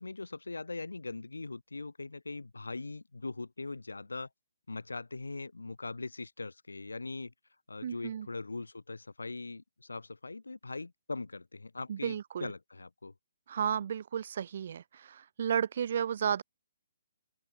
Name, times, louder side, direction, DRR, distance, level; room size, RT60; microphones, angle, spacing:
voice 1, 0.0-4.3 4.7-7.3 7.7-13.1, left 3 dB, 90° left, 1.3 m, -41 dB
voice 2, 7.8-8.3 11.9-12.5 13.5-16.4, right 8 dB, 55° right, 0.5 m, -33 dB
open air
hypercardioid pair, 140°, 0 cm